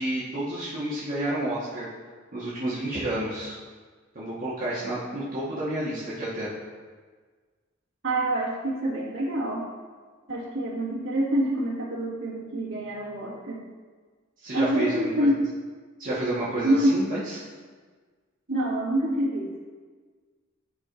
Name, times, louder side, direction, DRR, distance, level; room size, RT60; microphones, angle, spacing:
voice 1, 0.0-1.8 2.3-3.5 4.1-6.5 14.4-15.3 16.0-17.4, right 1 dB, 45° right, -10 dB, 1.4 m, -30 dB
voice 2, 8.0-9.6 10.3-13.6 14.5-15.4 16.6-17.0 18.5-19.5, right 1 dB, 65° right, -7 dB, 1.5 m, -26 dB
11.0 x 4.6 x 2.5 m, 1.5 s
head